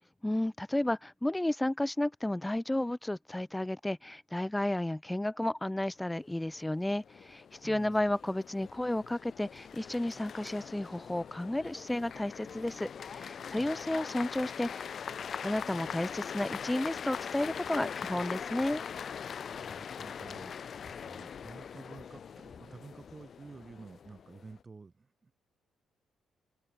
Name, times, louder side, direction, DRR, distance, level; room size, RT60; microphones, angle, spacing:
voice 1, 0.2-14.9 15.4-18.8, left 1 dB, 10° left, 1.4 m, -32 dB
sound 1, 6.4-24.6, left 7 dB, 50° left, 1.1 m, -42 dB
voice 2, 7.6-8.1 13.6-13.7 19.5-25.3, right 4 dB, 30° right, 4.0 m, -51 dB
cardioid pair, 90°, 0 cm